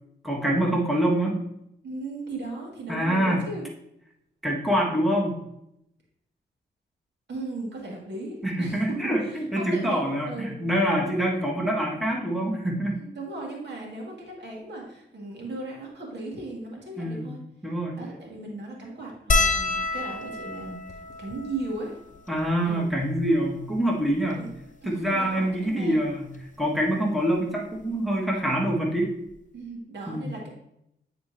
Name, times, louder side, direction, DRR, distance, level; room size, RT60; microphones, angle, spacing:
voice 1, 0.2-1.3 2.9-3.4 4.4-5.4 8.4-13.0 17.0-17.9 22.3-24.4 24.8-26.3 26.6-29.2 30.1-30.3, right 1 dB, ahead, -2 dB, 1.6 m, -25 dB
voice 2, 1.8-3.7 7.3-9.0 9.2-10.0 10.3-10.7 11.3-11.4 12.9-17.4 18.0-22.0 22.6-22.8 24.4-24.5 24.8-26.0 29.5-30.5, right 2 dB, 65° right, -2 dB, 2.0 m, -37 dB
sound 1, 19.3-23.9 24.6-24.7 24.9-25.1 26.4-26.6 28.1-28.2 28.4-28.6, left 3 dB, 40° left, 0.7 m, -29 dB
9.2 x 4.3 x 2.7 m, 0.79 s
cardioid pair, 65°, 19 cm